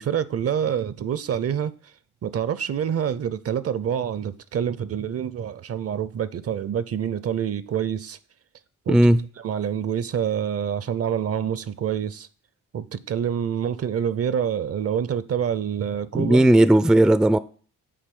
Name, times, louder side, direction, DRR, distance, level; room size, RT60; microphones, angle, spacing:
voice 1, 0.0-1.7 2.2-8.2 8.9-9.0 9.4-12.3 12.7-16.4, right 8 dB, 45° right, 0.6 m, -26 dB
voice 2, 8.9-9.2 16.1-17.4, right 1 dB, ahead, 0.4 m, -16 dB
7.5 x 4.2 x 5.3 m
supercardioid pair, 60°, 34 cm